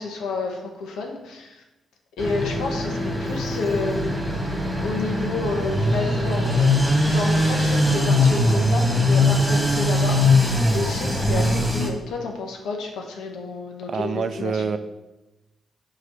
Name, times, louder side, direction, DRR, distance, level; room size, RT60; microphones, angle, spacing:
voice 1, 0.0-1.6 2.2-4.2 4.5-6.7 7.0-14.6, left 3 dB, 80° left, 2 dB, 1.0 m, -30 dB
sound 1, 2.2-11.9, left 1 dB, 10° right, 1.7 m, -21 dB
voice 2, 13.9-14.8, right 5 dB, 55° right, 10 dB, 0.4 m, -26 dB
6.4 x 3.1 x 5.5 m, 1.0 s
supercardioid pair, 55°, 0 cm